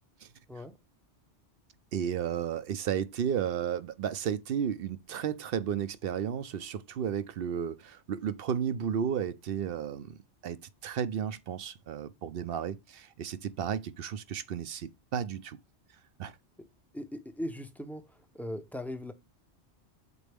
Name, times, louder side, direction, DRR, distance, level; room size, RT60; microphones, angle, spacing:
voice 1, 1.9-10.2 10.4-15.6 16.2-16.4, right 8 dB, 60° right, 0.7 m, -33 dB
voice 2, 16.9-18.0 18.3-19.1, left 1 dB, ahead, 0.5 m, -38 dB
6.9 x 4.1 x 3.4 m
omnidirectional pair, 1.2 m